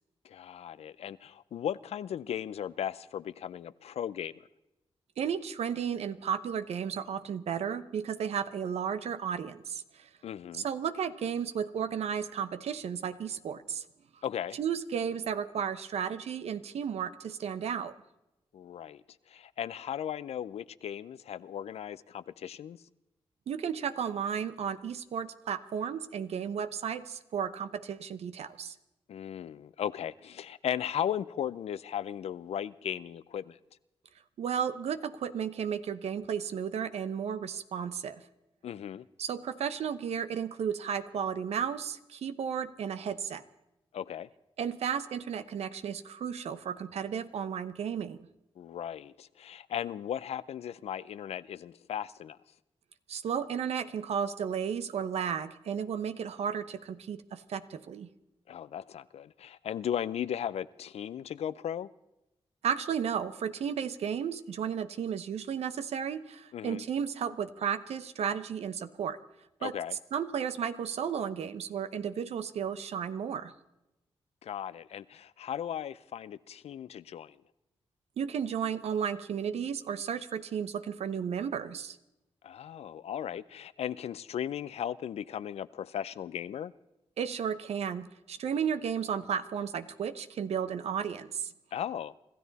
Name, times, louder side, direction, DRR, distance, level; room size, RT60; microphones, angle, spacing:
voice 1, 0.2-4.3 10.2-10.7 14.2-14.6 18.5-22.8 29.1-33.6 38.6-39.1 43.9-44.3 48.6-52.4 58.5-61.9 66.5-66.8 69.6-70.0 74.4-77.4 82.4-86.7 91.7-92.1, left 9 dB, 80° left, 0.5 m, -36 dB
voice 2, 5.2-10.1 10.5-13.9 14.5-17.9 23.5-28.7 34.4-38.2 39.2-43.4 44.6-48.3 53.1-58.1 62.6-69.2 69.6-69.7 70.1-73.5 78.2-82.0 87.2-91.5, right 7 dB, 85° right, 0.9 m, -33 dB
25.5 x 13.5 x 4.1 m
cardioid pair, 55°, 11 cm